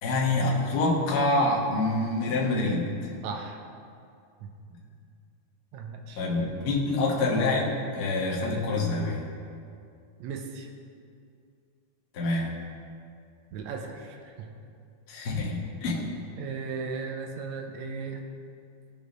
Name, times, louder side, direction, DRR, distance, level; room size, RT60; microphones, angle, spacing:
voice 1, 0.0-2.9 6.2-9.2 12.1-12.5 15.1-16.1, left 2 dB, 55° left, -3 dB, 1.1 m, -26 dB
voice 2, 3.2-3.6 4.4-4.5 5.7-6.3 10.2-10.7 13.5-14.5 16.4-18.3, right 5 dB, 80° right, 3 dB, 1.9 m, -36 dB
15.0 x 5.3 x 3.0 m, 2.4 s
omnidirectional pair, 3.3 m